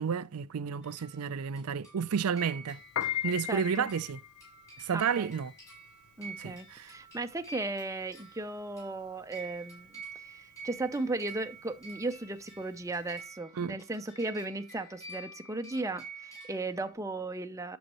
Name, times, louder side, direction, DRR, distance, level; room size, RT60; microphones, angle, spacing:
voice 1, 0.0-2.8 3.2-4.2 4.8-5.5 6.4-6.9 13.6-13.7, right 6 dB, 90° right, 0.5 m, -31 dB
sound 1, 0.8-16.9, right 4 dB, 15° left, 4.2 m, -49 dB
Piano, 2.8-13.2, left 10 dB, 75° left, 0.4 m, -39 dB
voice 2, 3.5-3.9 4.9-5.3 6.2-17.8, right 2 dB, 15° right, 0.6 m, -36 dB
9.2 x 7.1 x 3.0 m
head